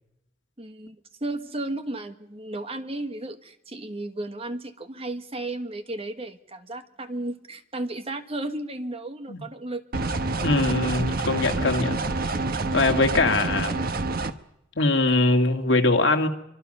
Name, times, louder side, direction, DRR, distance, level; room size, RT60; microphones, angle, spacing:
voice 1, 0.6-10.0, right 2 dB, 30° right, 1.4 m, -34 dB
sound 1, 9.9-14.3, right 3 dB, 50° right, 1.2 m, -27 dB
voice 2, 10.4-12.0 12.7-13.9 14.8-16.3, left 2 dB, 70° left, 2.2 m, -22 dB
25.0 x 24.5 x 5.5 m
head